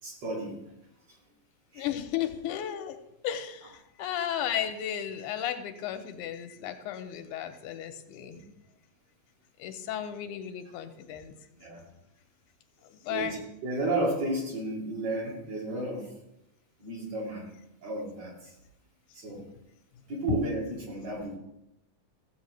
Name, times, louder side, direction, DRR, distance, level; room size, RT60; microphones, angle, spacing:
voice 1, 0.0-0.6 1.7-1.9 11.6-11.8 13.1-16.1 16.8-17.5 17.8-18.5 19.1-19.5 20.1-21.4, right 2 dB, 55° right, -4 dB, 3.4 m, -33 dB
voice 2, 1.7-8.4 9.6-11.4 12.8-13.4 20.3-20.4, left 9 dB, 85° left, 8 dB, 2.1 m, -34 dB
15.0 x 7.9 x 3.1 m, 0.84 s
omnidirectional pair, 3.6 m